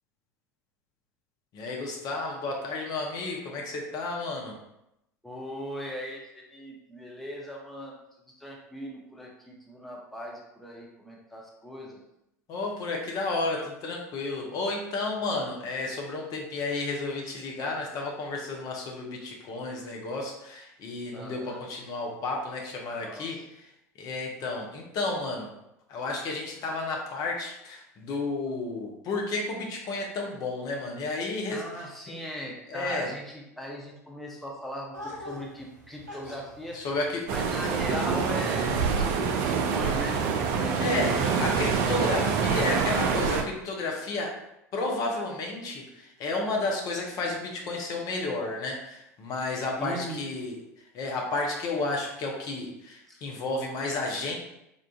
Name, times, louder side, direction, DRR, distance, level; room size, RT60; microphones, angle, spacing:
voice 1, 1.5-4.6 12.5-23.7 24.0-25.5 25.9-31.8 32.7-33.1 36.7-37.3 37.6-37.7 40.8-44.4 44.7-50.6 50.9-54.3, left 3 dB, 45° left, 0 dB, 0.6 m, -32 dB
voice 2, 5.2-8.0 8.4-12.0 21.1-21.6 23.0-23.4 31.5-36.8 37.3-40.2 40.5-41.0 49.8-50.2 53.1-53.2, equal, ahead, -2 dB, 0.6 m, -39 dB
sound 1, 34.9-40.4, left 1 dB, 85° right, 0.7 m, -45 dB
sound 2, 37.3-43.4, right 6 dB, 50° right, 0.4 m, -26 dB
3.7 x 2.4 x 2.3 m, 0.84 s
figure-of-eight pair, 75°, 9 cm